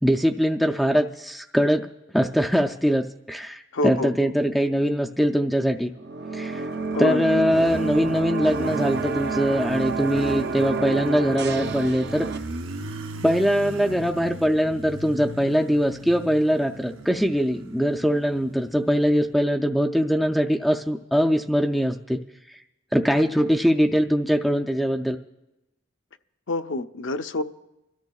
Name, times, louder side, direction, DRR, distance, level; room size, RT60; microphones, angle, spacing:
voice 1, 0.0-1.9 2.1-5.9 6.3-6.7 7.0-12.3 13.2-22.2 22.9-25.2, equal, ahead, 0.4 m, -22 dB
voice 2, 3.7-4.3 6.9-7.3 26.5-27.4, left 2 dB, 70° left, 0.6 m, -27 dB
sound 1, 6.0-12.4, right 4 dB, 60° right, 0.6 m, -29 dB
Motorcycle, 6.6-19.3, right 1 dB, 90° right, 0.8 m, -39 dB
29.5 x 13.5 x 2.3 m
head